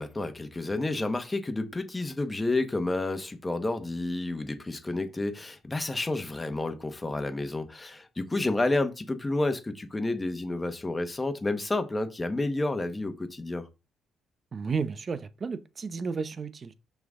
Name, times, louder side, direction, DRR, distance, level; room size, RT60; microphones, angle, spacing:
voice 1, 0.0-13.6, left 2 dB, 20° left, 1.2 m, -30 dB
voice 2, 14.5-16.7, right 5 dB, 40° right, 0.8 m, -32 dB
6.1 x 5.8 x 3.7 m
cardioid pair, 90°, 0 cm